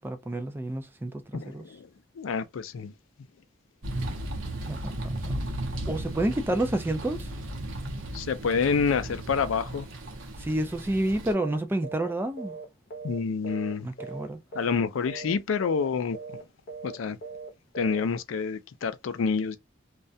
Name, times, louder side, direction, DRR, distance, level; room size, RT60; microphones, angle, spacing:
voice 1, 0.0-1.6 4.7-5.3 5.9-7.3 10.4-12.6 13.8-14.4, right 1 dB, 10° right, 0.3 m, -29 dB
voice 2, 1.3-1.9 2.2-2.9 8.1-9.9 13.0-13.9 14.5-16.2 16.8-17.2 17.8-19.6, left 5 dB, 85° left, 0.4 m, -28 dB
sound 1, 3.8-11.3, right 1 dB, 80° right, 0.7 m, -35 dB
sound 2, 11.3-11.6 11.8-12.1 12.4-13.7 14.0-14.3 14.5-14.8 15.1-15.3 15.6-15.9 16.1-16.4 16.7-16.9 17.2-17.5 17.7-18.0, right 4 dB, 50° left, 0.7 m, -40 dB
2.3 x 2.1 x 2.6 m
head